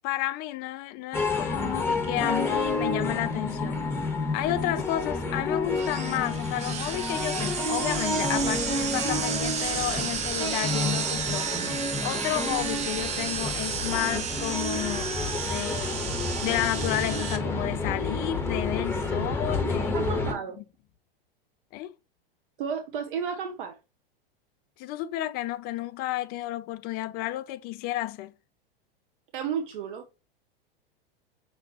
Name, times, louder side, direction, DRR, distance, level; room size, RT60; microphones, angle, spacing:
voice 1, 0.0-3.9 4.3-11.6 12.0-15.1 15.4-16.1 16.4-20.0 20.6-20.7 21.7-21.9 24.8-28.3, left 15 dB, 35° left, 0.4 m, -31 dB
sound 1, 1.1-20.3, left 2 dB, 10° left, 1.3 m, -30 dB
sound 2, 5.8-17.4, right 7 dB, 25° right, 0.7 m, -32 dB
voice 2, 19.9-20.6 22.6-23.8 29.3-30.1, right 7 dB, 60° right, 0.8 m, -32 dB
5.7 x 2.8 x 2.9 m
hypercardioid pair, 95°, 29 cm